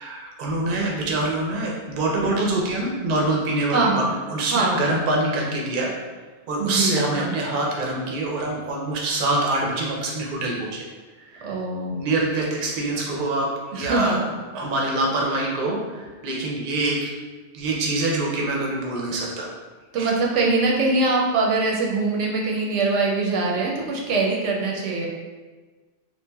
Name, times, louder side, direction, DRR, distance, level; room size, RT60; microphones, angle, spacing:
voice 1, 0.0-4.0 4.3-5.9 6.5-10.8 11.2-11.5 11.9-13.5 13.7-14.2 14.5-17.1 17.5-19.5 20.0-20.1, right 2 dB, 55° right, -2 dB, 0.6 m, -25 dB
voice 2, 3.7-4.1 4.5-4.9 6.6-7.4 11.4-12.0 13.7-14.3 19.9-25.1, right 3 dB, 85° right, -1 dB, 0.9 m, -23 dB
3.1 x 2.4 x 2.2 m, 1.3 s
omnidirectional pair, 1.2 m